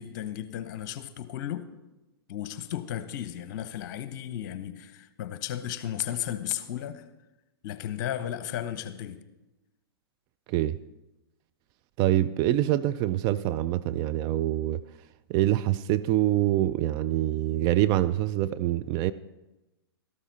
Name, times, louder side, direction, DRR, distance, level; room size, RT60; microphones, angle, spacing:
voice 1, 0.0-1.7 2.3-7.0 7.6-9.2, left 11 dB, 45° left, 1.0 m, -34 dB
voice 2, 12.0-14.8 15.3-19.1, right 14 dB, 30° right, 0.4 m, -25 dB
13.0 x 13.0 x 4.1 m
figure-of-eight pair, 110°, 13 cm